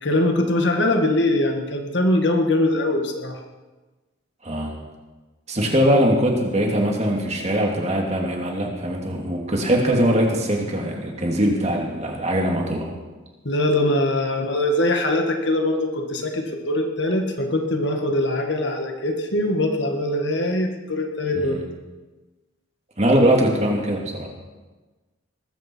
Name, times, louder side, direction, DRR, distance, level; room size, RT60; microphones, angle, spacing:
voice 1, 0.0-3.4 13.4-21.6, left 1 dB, 60° left, 3 dB, 2.0 m, -22 dB
voice 2, 5.5-12.9 21.3-21.6 23.0-24.3, equal, 35° right, 0 dB, 2.6 m, -21 dB
20.0 x 14.5 x 4.6 m, 1.2 s
head